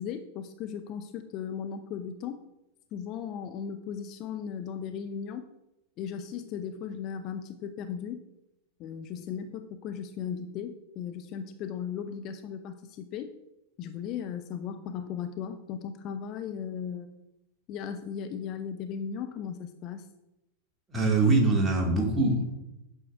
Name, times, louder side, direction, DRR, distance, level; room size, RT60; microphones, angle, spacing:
voice 1, 0.0-2.4 2.9-5.5 6.0-8.2 8.8-13.3 13.8-17.1 17.7-20.1, left 7 dB, 40° left, 8 dB, 0.5 m, -37 dB
voice 2, 20.9-22.4, right 3 dB, 15° right, 0 dB, 1.9 m, -23 dB
8.8 x 6.1 x 2.5 m, 0.91 s
figure-of-eight pair, 90°, 0 cm